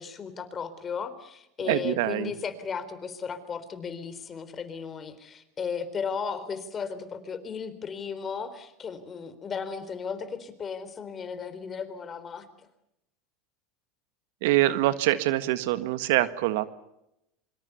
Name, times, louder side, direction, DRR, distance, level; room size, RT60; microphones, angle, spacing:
voice 1, 0.0-12.5, left 6 dB, 30° left, 12 dB, 3.9 m, -35 dB
voice 2, 1.7-2.3 14.4-16.7, right 16 dB, 70° right, 12 dB, 1.6 m, -24 dB
26.5 x 24.5 x 7.0 m, 0.85 s
hypercardioid pair, 95°, 0 cm